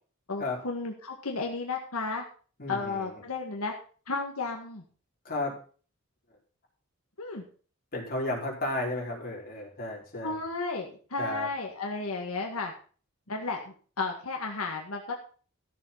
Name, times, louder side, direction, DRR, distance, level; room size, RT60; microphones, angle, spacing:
voice 1, 0.3-2.2 2.7-3.7 4.1-4.8 7.2-7.4 10.2-12.7 13.3-15.1, left 3 dB, 90° left, 1 dB, 1.9 m, -33 dB
voice 2, 2.6-3.2 5.2-5.6 7.9-10.4 11.2-11.5, left 2 dB, 45° left, -2 dB, 4.5 m, -33 dB
14.0 x 6.9 x 5.6 m, 0.41 s
head